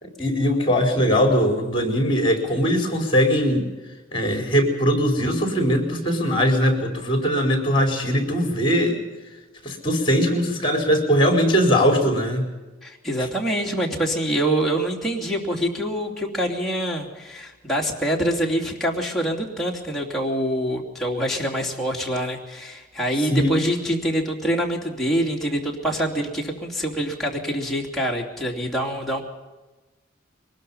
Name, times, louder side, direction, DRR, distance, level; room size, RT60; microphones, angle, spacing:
voice 1, 0.0-3.7 4.1-9.0 9.6-12.5 23.3-23.6, equal, 25° left, 3 dB, 4.4 m, -20 dB
voice 2, 12.8-29.2, right 1 dB, ahead, -3 dB, 2.9 m, -25 dB
23.5 x 20.0 x 5.6 m, 1.2 s
head